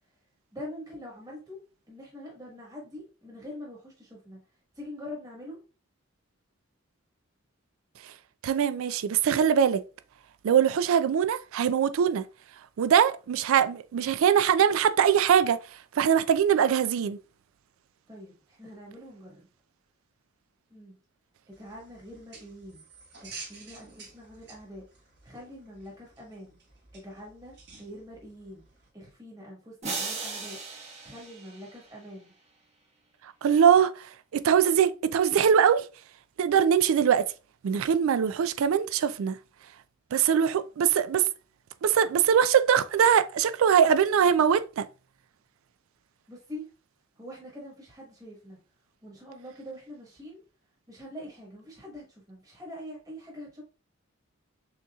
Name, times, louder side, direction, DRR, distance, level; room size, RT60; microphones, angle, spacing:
voice 1, 0.5-1.6 1.9-4.4 4.8-5.6 18.1-19.5 20.7-21.0 21.5-22.8 23.2-24.8 25.2-26.6 26.9-28.6 28.9-30.6 31.0-32.3 46.3-46.7 47.2-48.6 49.0-50.4 50.9-53.6, left 1 dB, 15° right, 1.3 m, -44 dB
voice 2, 8.4-9.8 10.4-12.3 12.8-15.6 15.9-17.2 33.4-35.9 36.4-37.3 37.6-39.4 40.1-41.3 41.8-44.9, right 8 dB, 75° right, 0.3 m, -22 dB
sound 1, 21.5-28.9, right 4 dB, 55° right, 1.4 m, -50 dB
sound 2, 29.8-32.2, right 4 dB, 30° right, 0.9 m, -37 dB
6.4 x 2.8 x 2.3 m
head